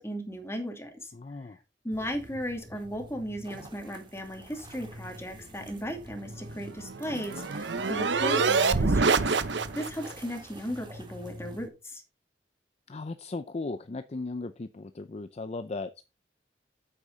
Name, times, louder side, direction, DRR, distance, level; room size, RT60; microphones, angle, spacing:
voice 1, 0.0-1.1 1.8-9.4 9.7-12.0, equal, 15° left, 3 dB, 2.5 m, -36 dB
voice 2, 1.1-1.6 12.9-16.0, left 3 dB, 35° left, 11 dB, 0.5 m, -37 dB
sound 1, 1.9-11.7, equal, 25° right, 2.3 m, -46 dB
sound 2, 6.5-10.1, right 4 dB, 80° right, 0.8 m, -26 dB
8.5 x 8.3 x 3.9 m, 0.28 s
head